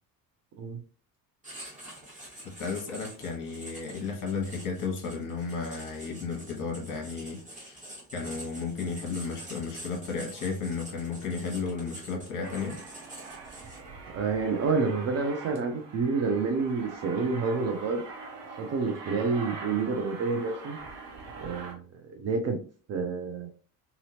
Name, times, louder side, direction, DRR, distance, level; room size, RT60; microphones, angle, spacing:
Writing, 1.4-14.0, right 1 dB, 15° right, 1.4 m, -46 dB
voice 1, 2.4-7.8 8.1-12.8, left 4 dB, 40° left, 1.0 m, -34 dB
Aircraft, 12.4-21.7, right 4 dB, 55° right, 1.0 m, -43 dB
voice 2, 14.1-18.0 18.6-20.8 21.4-22.6 22.9-23.5, right 4 dB, 30° right, 0.6 m, -29 dB
2.8 x 2.7 x 2.8 m
figure-of-eight pair, 55°, 49 cm